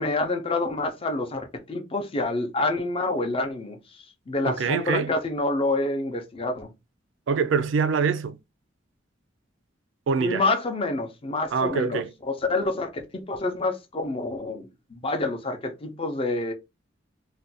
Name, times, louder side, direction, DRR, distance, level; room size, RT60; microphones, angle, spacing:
voice 1, 0.0-3.8 4.3-6.7 10.2-16.5, left 2 dB, 30° left, 0.5 m, -27 dB
voice 2, 4.5-5.1 7.3-8.4 10.1-10.5 11.5-12.1, right 5 dB, 75° right, 0.4 m, -24 dB
2.5 x 2.2 x 4.0 m
head